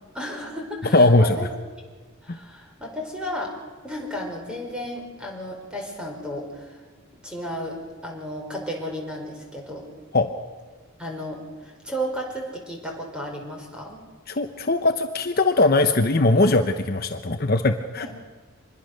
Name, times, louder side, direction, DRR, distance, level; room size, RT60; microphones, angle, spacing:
voice 1, 0.1-1.5 2.2-3.5 3.8-6.8 7.2-9.8 11.0-14.0 18.0-18.1, equal, 5° right, 0 dB, 5.0 m, -33 dB
voice 2, 0.9-1.4 2.3-2.4 10.1-10.3 14.3-18.1, left 2 dB, 45° left, 7 dB, 0.9 m, -20 dB
26.0 x 21.0 x 6.6 m, 1.4 s
head